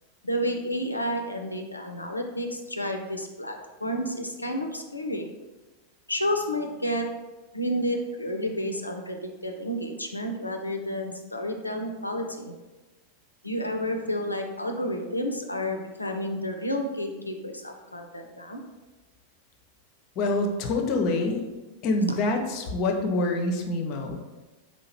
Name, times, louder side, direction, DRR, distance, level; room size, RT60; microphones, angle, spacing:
voice 1, 0.2-5.3 6.1-7.1 7.5-12.5 13.4-18.6 22.1-22.2, equal, 85° left, 4 dB, 0.4 m, -30 dB
voice 2, 20.2-21.4 21.8-24.2, left 2 dB, 40° left, 3 dB, 0.6 m, -26 dB
4.2 x 2.8 x 2.9 m, 1.1 s
figure-of-eight pair, 90°, 0 cm